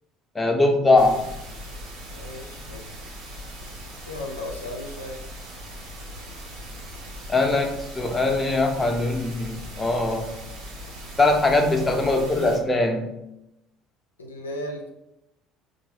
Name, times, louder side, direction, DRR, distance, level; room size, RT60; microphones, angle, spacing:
voice 1, 0.3-1.3 7.3-10.3 11.2-13.1, left 2 dB, 20° left, 3 dB, 0.6 m, -21 dB
sound 1, 1.0-12.6, equal, 70° right, 1.1 m, -39 dB
voice 2, 2.1-2.9 4.1-5.2 14.2-14.9, left 1 dB, 90° left, 0 dB, 0.4 m, -35 dB
3.9 x 2.4 x 2.9 m, 0.88 s
figure-of-eight pair, 60°, 0 cm